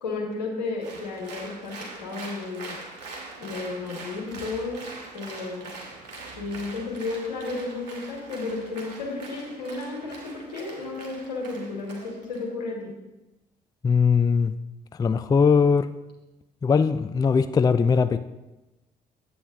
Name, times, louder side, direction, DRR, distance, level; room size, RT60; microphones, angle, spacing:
voice 1, 0.0-2.7 3.4-4.8 5.1-5.7 6.3-12.9, left 3 dB, 80° left, 1.7 m, -33 dB
Applause, 0.8-12.4, right 3 dB, 80° right, 1.4 m, -42 dB
voice 2, 13.8-14.5 15.0-15.9 16.6-18.2, left 5 dB, 20° left, 0.4 m, -20 dB
9.3 x 7.8 x 3.7 m
figure-of-eight pair, 45°, 21 cm